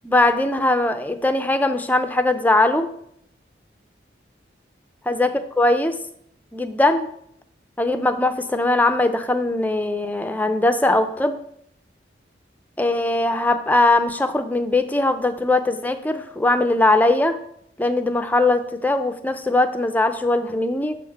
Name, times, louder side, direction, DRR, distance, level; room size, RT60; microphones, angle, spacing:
voice 1, 0.0-2.9 5.1-5.3 5.6-6.0 6.5-7.1 7.8-11.4 12.8-17.4 17.8-20.9, left 2 dB, 10° left, 8 dB, 0.4 m, -20 dB
6.9 x 3.8 x 6.5 m, 0.70 s
head